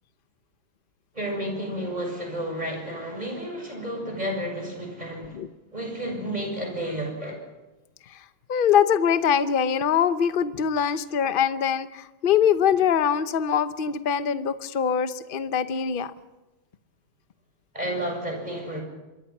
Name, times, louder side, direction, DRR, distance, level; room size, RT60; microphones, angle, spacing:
voice 1, 1.1-5.4 5.7-7.4 10.8-10.9 17.7-18.8, right 1 dB, 20° right, 2 dB, 7.1 m, -31 dB
voice 2, 8.5-16.1, left 8 dB, 50° left, 11 dB, 0.6 m, -23 dB
26.0 x 22.5 x 6.1 m, 1.1 s
omnidirectional pair, 2.2 m